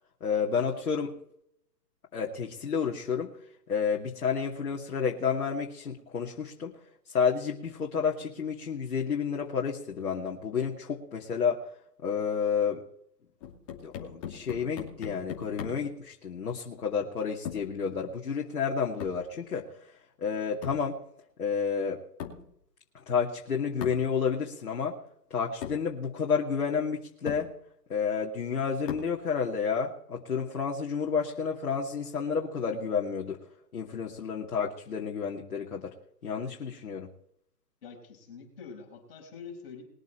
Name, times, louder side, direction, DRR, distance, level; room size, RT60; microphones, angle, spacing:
voice 1, 0.2-1.2 2.1-3.3 3.7-6.7 7.1-11.6 12.0-12.8 13.8-19.7 20.2-21.0 21.4-22.0 23.1-25.0 25.3-27.5 27.9-33.4 33.7-35.9 36.2-37.1, left 6 dB, 60° left, -1 dB, 2.6 m, -30 dB
sound 1, 13.4-15.9 17.4-17.8 19.0-19.3 20.6-20.9 22.2-22.5 23.8-24.1 25.1-25.2 25.6-25.9 26.7-26.8 27.3-27.5 28.9-29.2, left 8 dB, 20° left, 2.6 m, -39 dB
voice 2, 37.8-39.8, left 5 dB, 35° left, 1 dB, 5.1 m, -45 dB
21.5 x 8.1 x 4.5 m, 0.71 s
hypercardioid pair, 160°, 50 cm